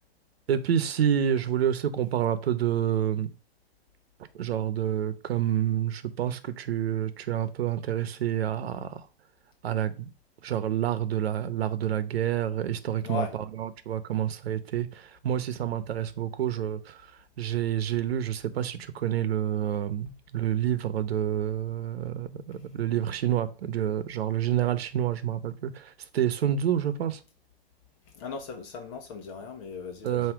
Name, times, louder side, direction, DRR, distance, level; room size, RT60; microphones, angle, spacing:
voice 1, 0.5-3.3 4.3-9.0 9.6-10.1 10.4-17.0 17.4-27.2 30.0-30.3, right 10 dB, 70° right, 1.0 m, -28 dB
voice 2, 28.2-30.3, left 5 dB, 35° left, 1.1 m, -37 dB
7.6 x 2.9 x 4.6 m
hypercardioid pair, 155°, 32 cm